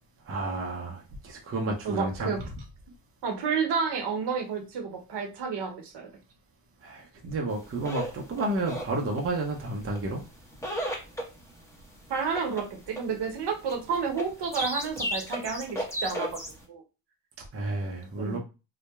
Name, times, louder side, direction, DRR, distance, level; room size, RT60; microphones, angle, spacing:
voice 1, 0.3-2.3 6.8-10.2 17.5-18.4, right 2 dB, 30° right, 0.6 m, -31 dB
voice 2, 1.8-2.4 3.2-6.1 12.1-16.3 16.7-16.8 18.2-18.4, right 5 dB, 55° right, 0.9 m, -30 dB
sound 1, 7.6-16.6, equal, 5° left, 0.9 m, -34 dB
2.7 x 2.2 x 2.3 m
supercardioid pair, 65°, 50 cm